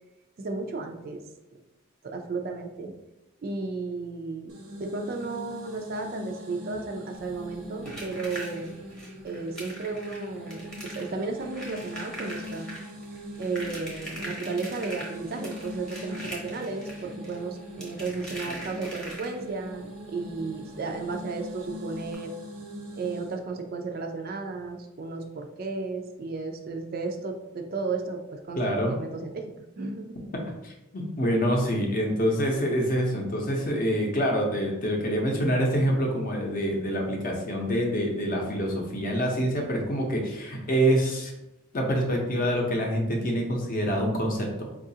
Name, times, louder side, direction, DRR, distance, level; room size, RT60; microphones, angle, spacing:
voice 1, 0.4-1.2 2.0-2.9 3.4-4.5 4.8-8.7 9.2-12.7 13.3-22.3 23.0-29.5 29.8-30.2, right 3 dB, 45° right, 4 dB, 0.3 m, -34 dB
sound 1, 4.5-23.4, left 1 dB, 90° right, 0.8 m, -42 dB
sound 2, 7.1-19.6 21.1-21.2 21.5-21.6 22.0-22.1, right 1 dB, 5° left, 0.7 m, -41 dB
voice 2, 28.6-28.9 30.6-41.3 41.7-44.7, equal, 40° left, 1 dB, 0.6 m, -26 dB
4.6 x 2.4 x 2.7 m, 0.94 s
head